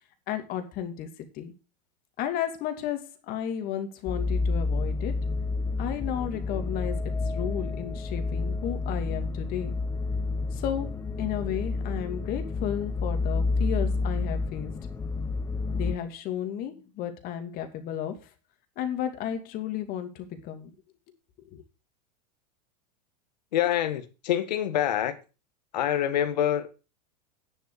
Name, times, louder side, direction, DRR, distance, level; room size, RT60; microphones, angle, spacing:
voice 1, 0.3-1.5 2.2-5.2 5.8-9.8 10.5-14.7 15.7-18.3 18.8-20.7 21.5-21.6, left 10 dB, 45° left, 2.5 m, -33 dB
sound 1, 4.1-16.0, left 3 dB, 15° left, 0.7 m, -29 dB
voice 2, 23.5-25.2 25.7-26.7, left 11 dB, 85° left, 1.7 m, -26 dB
9.8 x 7.1 x 6.4 m
supercardioid pair, 125°, 21 cm